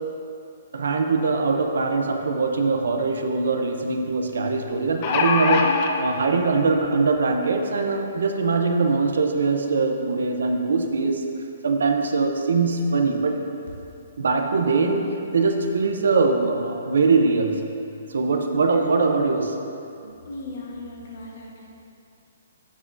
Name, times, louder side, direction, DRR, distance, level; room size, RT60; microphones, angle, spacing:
voice 1, 0.7-11.3 11.6-13.4 14.2-17.7 18.1-19.5 20.0-20.1, right 4 dB, 80° right, 4 dB, 0.6 m, -22 dB
sound 1, 2.6-2.7 3.0-3.1 4.7-5.9 6.8-6.9 7.3-7.4, left 5 dB, 25° left, 0.3 m, -22 dB
voice 2, 20.2-21.7, left 2 dB, 50° left, -2 dB, 1.1 m, -37 dB
7.1 x 6.1 x 2.6 m, 2.7 s
hypercardioid pair, 175°, 0 cm